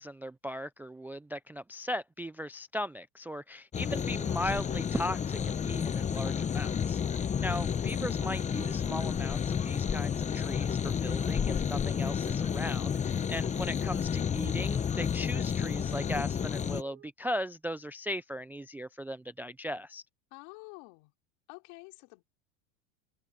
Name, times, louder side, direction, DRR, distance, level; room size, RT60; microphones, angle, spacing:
voice 1, 0.0-20.0, equal, 5° right, 0.3 m, -38 dB
sound 1, 3.7-16.8, left 7 dB, 20° left, 0.7 m, -31 dB
sound 2, 5.4-5.7 8.4-9.0 10.4-11.0 11.3-12.9 13.2-13.3 14.9-15.5 16.6-17.1, right 9 dB, 35° right, 3.2 m, -58 dB
voice 2, 13.2-13.5 20.3-21.1 21.5-22.2, left 28 dB, 70° left, 3.7 m, -50 dB
open air
supercardioid pair, 130°, 37 cm